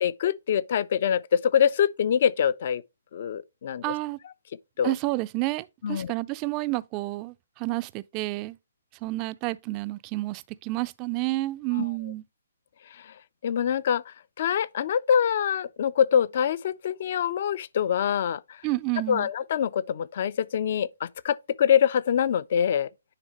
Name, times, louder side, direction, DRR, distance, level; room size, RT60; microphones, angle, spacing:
voice 1, 0.0-2.8 3.1-3.8 4.8-4.9 5.8-6.1 13.0-13.1 13.4-18.6 19.1-22.9, left 8 dB, 45° left, 0.4 m, -25 dB
voice 2, 3.8-4.2 4.8-8.6 9.0-12.2 18.6-19.3, right 20 dB, 25° right, 0.3 m, -30 dB
9.9 x 3.3 x 3.0 m
figure-of-eight pair, 135°, 0 cm